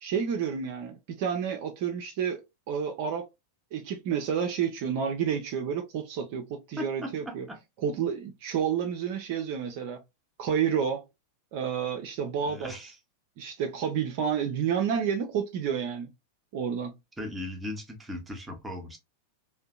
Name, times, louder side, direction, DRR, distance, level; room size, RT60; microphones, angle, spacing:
voice 1, 0.0-3.3 3.7-7.5 7.8-10.0 10.4-11.1 11.5-12.7 13.4-16.1 16.5-16.9, right 7 dB, 50° right, 0.4 m, -30 dB
voice 2, 6.8-7.6 12.4-12.9 17.2-19.0, left 1 dB, 10° right, 0.7 m, -38 dB
2.6 x 2.1 x 2.3 m
figure-of-eight pair, 90°, 0 cm